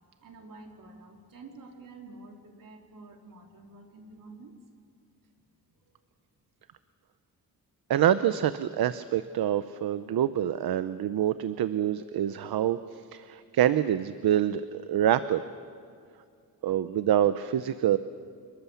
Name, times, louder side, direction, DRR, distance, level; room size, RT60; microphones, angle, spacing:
voice 1, 0.2-4.5 5.9-6.0, right 3 dB, 60° right, 1 dB, 3.5 m, -49 dB
voice 2, 7.9-15.4 16.6-18.0, right 11 dB, 80° right, 12 dB, 0.7 m, -26 dB
28.5 x 20.5 x 7.1 m, 2.3 s
wide cardioid pair, 150°, 36 cm